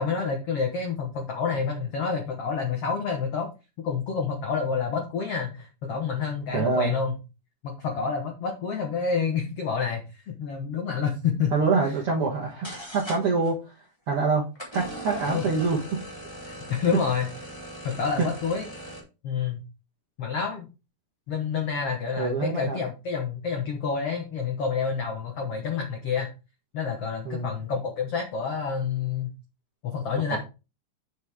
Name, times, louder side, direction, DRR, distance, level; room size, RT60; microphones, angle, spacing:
voice 1, 0.0-3.5 3.8-7.1 7.6-11.5 15.3-15.4 16.4-17.3 17.8-18.6 19.2-19.6 20.2-20.7 21.3-26.3 26.7-29.3 29.8-30.4, left 6 dB, 80° left, 3 dB, 1.3 m, -28 dB
voice 2, 6.5-7.0 11.5-13.8 14.1-14.4 14.7-16.0 18.2-18.3 22.2-22.8 27.2-27.5 30.3-30.4, right 4 dB, 70° right, -2 dB, 1.3 m, -25 dB
sound 1, 12.3-12.4 12.6-13.5 14.5-19.0, right 1 dB, 5° left, 3.0 m, -39 dB
8.3 x 6.4 x 3.5 m, 0.29 s
omnidirectional pair, 4.6 m